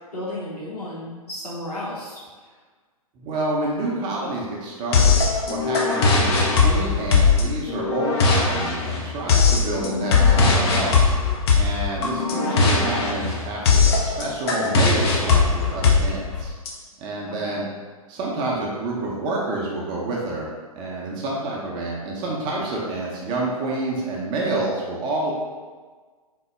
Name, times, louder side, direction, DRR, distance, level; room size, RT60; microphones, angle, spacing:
voice 1, 0.1-2.2 17.2-17.6, left 1 dB, 85° left, -7 dB, 1.0 m, -33 dB
voice 2, 3.1-11.1 11.5-16.5 17.0-17.7 18.1-25.3, right 2 dB, 25° right, -3 dB, 0.6 m, -28 dB
sound 1, 4.9-16.7, left 4 dB, 45° left, 0.6 m, -19 dB
3.6 x 2.1 x 3.2 m, 1.4 s
figure-of-eight pair, 115°, 19 cm